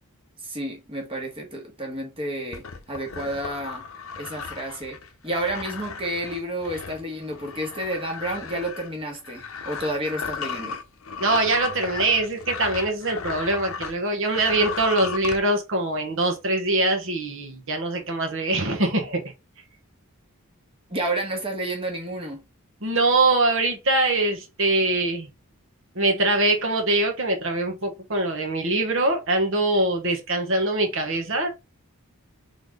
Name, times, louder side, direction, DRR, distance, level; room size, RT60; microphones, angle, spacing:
voice 1, 0.4-3.8 4.1-10.8 20.9-22.5, right 1 dB, 25° right, 1.4 m, -30 dB
sound 1, 2.5-14.0 14.3-15.4, left 6 dB, 65° left, 0.7 m, -35 dB
voice 2, 11.2-19.2 22.8-25.3 25.9-31.5, right 2 dB, 60° right, 1.3 m, -23 dB
3.9 x 3.5 x 3.6 m
head